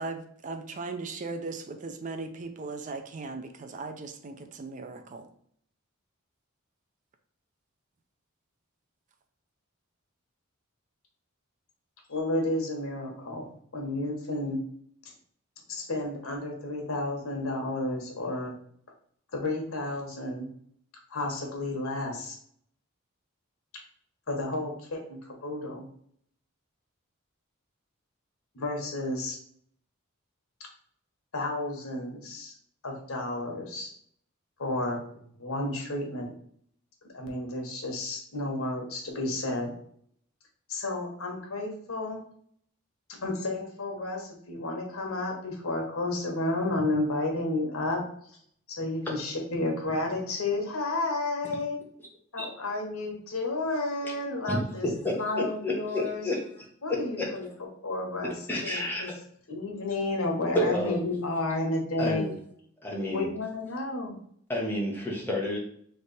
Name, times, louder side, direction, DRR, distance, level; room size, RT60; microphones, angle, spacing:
voice 1, 0.0-5.2, right 3 dB, 35° right, 6 dB, 0.4 m, -38 dB
voice 2, 12.1-14.6 15.7-18.5 19.3-20.5 21.1-22.4 24.3-25.8 28.5-29.4 31.3-32.5 32.8-33.9 34.6-36.3 37.1-39.7 40.7-42.2 43.2-48.0 48.7-51.8 52.3-54.9 55.1-56.2 56.8-57.5 57.8-58.3 58.6-59.1 59.5-62.3 63.1-64.1, left 2 dB, 90° left, 1 dB, 1.2 m, -31 dB
voice 3, 54.5-56.4 56.9-57.3 58.2-59.0 60.5-61.0 62.0-62.3 62.8-63.3 64.5-65.6, left 1 dB, 10° left, -3 dB, 1.1 m, -30 dB
3.3 x 3.3 x 4.1 m, 0.64 s
head